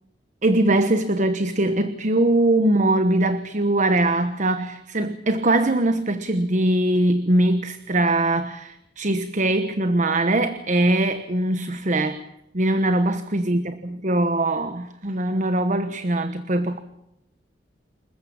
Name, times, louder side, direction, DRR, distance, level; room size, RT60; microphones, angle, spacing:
voice 1, 0.4-12.3 12.5-16.8, right 1 dB, 45° right, 11 dB, 1.2 m, -21 dB
28.0 x 15.0 x 8.7 m, 0.82 s
head